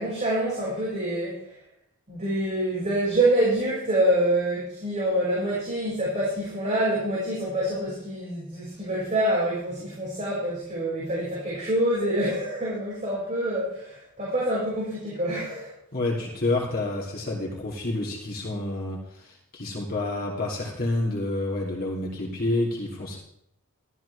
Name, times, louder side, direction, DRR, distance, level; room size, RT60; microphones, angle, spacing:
voice 1, 0.0-1.5 2.1-15.7, right 1 dB, 35° right, -8 dB, 6.0 m, -26 dB
voice 2, 15.9-23.2, left 2 dB, 45° left, -3 dB, 3.0 m, -29 dB
14.0 x 14.0 x 3.5 m, 0.73 s
head